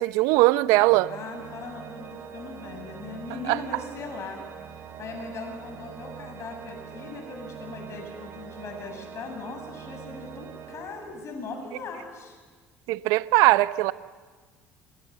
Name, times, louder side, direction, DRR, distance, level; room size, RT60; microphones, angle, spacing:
voice 1, 0.0-1.1 3.4-3.6 12.9-13.9, right 19 dB, 70° right, 0.8 m, -20 dB
Organ, 0.6-11.5, right 8 dB, 50° right, 3.4 m, -43 dB
voice 2, 1.1-4.4 4.7-12.4, left 3 dB, 50° left, 7.9 m, -39 dB
27.0 x 27.0 x 7.1 m
hypercardioid pair, 60°, 6 cm